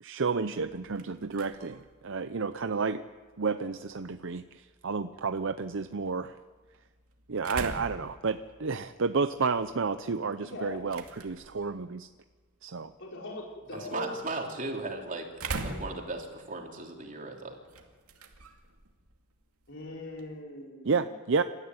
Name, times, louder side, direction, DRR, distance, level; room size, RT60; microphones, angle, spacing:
voice 1, 0.0-3.0 3.4-6.4 7.3-12.1 12.6-12.9 20.8-21.4, right 4 dB, 60° right, 10 dB, 0.6 m, -31 dB
sound 1, 0.6-20.4, right 3 dB, 90° right, 2.4 m, -45 dB
voice 2, 10.4-10.8 13.0-14.1 14.9-15.0 19.7-21.0, left 2 dB, 60° left, -2 dB, 4.7 m, -41 dB
voice 3, 13.7-15.2 15.6-17.6, right 2 dB, 40° right, 1 dB, 3.4 m, -37 dB
27.0 x 14.0 x 9.6 m, 1.4 s
head